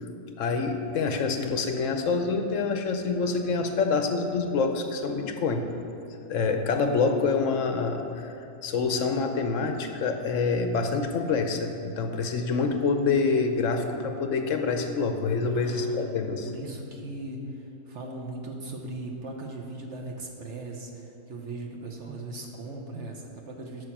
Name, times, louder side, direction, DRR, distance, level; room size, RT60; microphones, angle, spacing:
voice 1, 0.4-5.6 6.3-8.3 8.6-16.5, left 4 dB, 65° left, 6 dB, 0.9 m, -26 dB
voice 2, 15.4-16.1 16.4-23.9, right 2 dB, 55° right, 1 dB, 1.1 m, -38 dB
8.6 x 6.4 x 5.9 m, 2.9 s
omnidirectional pair, 1.6 m